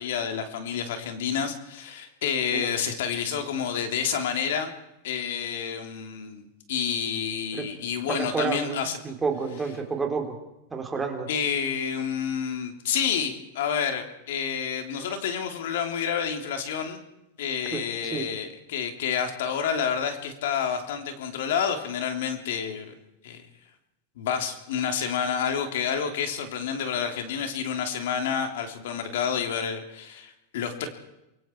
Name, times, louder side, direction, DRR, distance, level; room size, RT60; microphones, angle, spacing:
voice 1, 0.0-4.7 5.0-9.0 11.3-17.0 17.4-22.9 23.2-23.4 24.2-30.9, left 7 dB, 75° left, 5 dB, 3.3 m, -29 dB
voice 2, 8.1-10.3 10.7-11.3 17.7-18.3, right 4 dB, 15° right, 3 dB, 3.4 m, -30 dB
29.0 x 23.0 x 4.6 m, 0.90 s
supercardioid pair, 145°, 0 cm